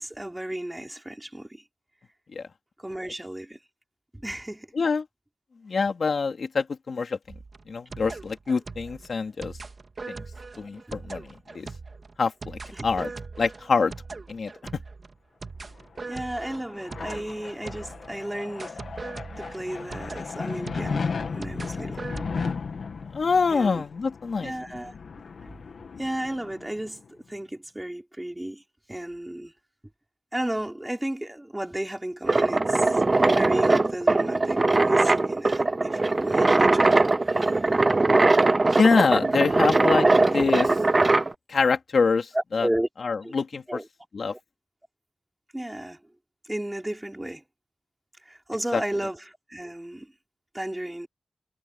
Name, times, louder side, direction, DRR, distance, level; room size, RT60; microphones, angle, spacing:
voice 1, 0.0-1.6 2.8-3.6 4.1-4.7 12.7-12.9 16.1-18.8 19.4-22.0 23.5-23.8 24.4-24.9 25.4-25.5 26.0-28.6 28.9-29.5 30.3-33.0 33.3-37.0 37.3-37.6 42.3-42.9 43.2-43.3 43.7-43.8 45.5-46.0 46.5-47.4 48.2-49.2 49.5-50.1 50.5-51.1, right 1 dB, 10° right, 4.6 m, -33 dB
voice 2, 5.6-7.2 7.7-9.5 10.1-10.2 10.6-11.3 11.5-11.7 12.2-13.1 13.4-13.9 14.3-14.8 23.1-24.5 38.6-40.7 41.5-42.7 43.0-43.6 44.1-44.3 48.7-48.8, left 4 dB, 70° left, 2.8 m, -25 dB
sound 1, 7.3-18.2 18.6-22.5, right 4 dB, 50° right, 3.0 m, -40 dB
sound 2, 15.8-27.1, left 5 dB, 85° left, 2.4 m, -35 dB
sound 3, 32.2-41.3, right 2 dB, 30° right, 0.5 m, -21 dB
wide cardioid pair, 105°, 0 cm